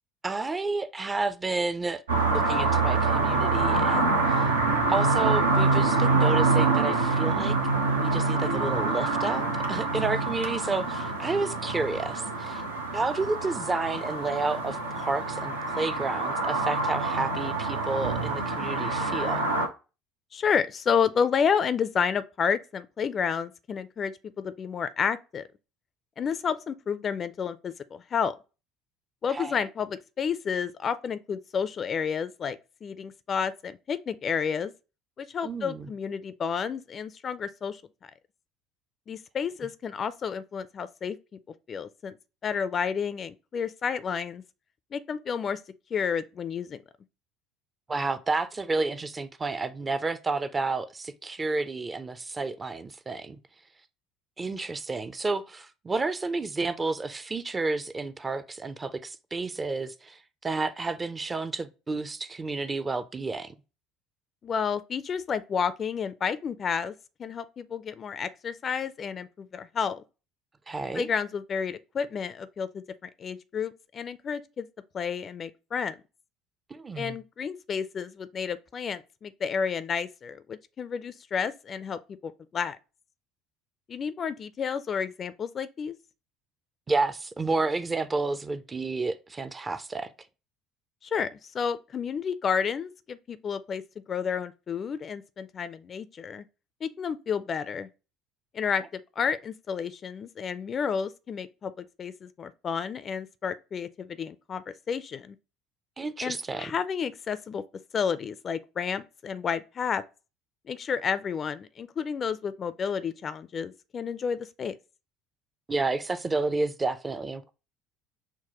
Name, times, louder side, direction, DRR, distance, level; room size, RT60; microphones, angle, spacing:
voice 1, 0.2-2.0 2.3-4.5 4.9-7.6 8.0-12.6 12.9-19.5 29.3-29.6 35.4-35.9 47.9-53.4 54.4-63.5 70.7-71.1 76.7-77.2 86.9-90.1 106.0-106.7 115.7-117.5, right 3 dB, 25° right, 0.4 m, -31 dB
sound 1, 2.1-19.7, right 3 dB, 85° right, 0.6 m, -26 dB
voice 2, 20.3-25.4 26.2-28.3 29.2-34.7 35.2-38.1 39.1-41.2 41.7-42.1 42.4-44.4 44.9-45.6 45.9-46.8 64.4-66.9 67.2-70.0 70.9-74.7 74.9-76.0 77.0-82.8 83.9-86.0 91.0-93.8 94.1-96.4 96.8-97.9 98.5-105.4 106.2-107.6 107.9-110.0 110.7-114.7, left 6 dB, 40° left, 0.3 m, -31 dB
5.8 x 2.1 x 2.9 m
figure-of-eight pair, 60°, 0 cm